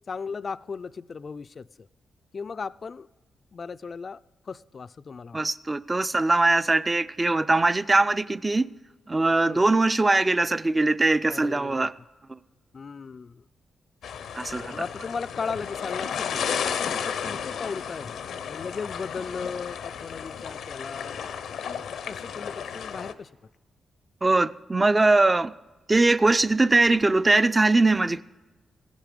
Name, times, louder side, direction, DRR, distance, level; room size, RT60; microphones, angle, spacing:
voice 1, 0.1-1.9 2.3-3.1 3.5-5.4 9.4-9.6 11.3-11.9 12.7-13.4 14.8-18.2 18.5-21.3 22.0-23.3, left 5 dB, 45° left, 0.3 m, -36 dB
voice 2, 5.3-8.7 9.1-11.9 12.3-12.4 14.3-14.8 24.2-25.5 25.9-28.2, right 2 dB, 25° right, 0.4 m, -21 dB
sound 1, 14.0-23.1, left 7 dB, 85° left, 0.6 m, -33 dB
16.0 x 10.5 x 5.2 m
cardioid pair, 75°, 0 cm